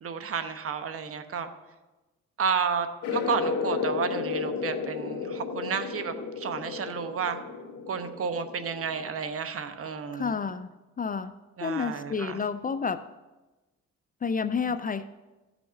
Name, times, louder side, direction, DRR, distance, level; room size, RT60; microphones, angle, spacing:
voice 1, 0.0-1.5 2.4-2.9 3.1-7.4 7.9-10.4 11.6-12.4, right 6 dB, 50° right, 9 dB, 0.9 m, -31 dB
sound 1, 3.0-9.2, left 5 dB, 80° left, 1.6 m, -33 dB
voice 2, 10.1-10.7 11.0-11.3 11.6-13.0 14.2-15.1, left 5 dB, 30° left, 12 dB, 0.4 m, -30 dB
15.5 x 6.1 x 4.0 m, 1.1 s
cardioid pair, 90°, 30 cm